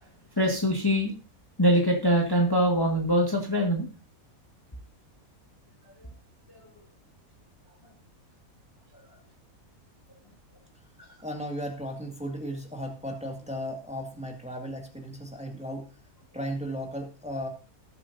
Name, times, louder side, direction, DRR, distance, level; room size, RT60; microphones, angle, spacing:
voice 1, 0.4-1.1 1.6-3.9, equal, 15° left, 0 dB, 1.6 m, -23 dB
voice 2, 11.2-15.9 16.3-17.5, equal, 5° right, 1 dB, 1.9 m, -35 dB
19.0 x 7.5 x 2.7 m, 0.32 s
omnidirectional pair, 1.5 m